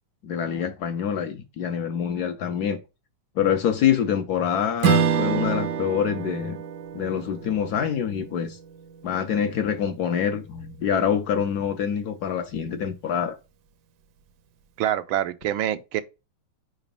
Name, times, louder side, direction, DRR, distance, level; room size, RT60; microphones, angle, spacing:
voice 1, 0.2-2.8 3.4-6.6 6.9-8.6 9.0-13.4, left 8 dB, 65° left, 1.0 m, -25 dB
Strum, 4.8-9.4, right 7 dB, 70° right, 1.1 m, -27 dB
voice 2, 14.8-16.0, right 12 dB, 90° right, 1.4 m, -25 dB
5.0 x 4.0 x 5.2 m
omnidirectional pair, 2.1 m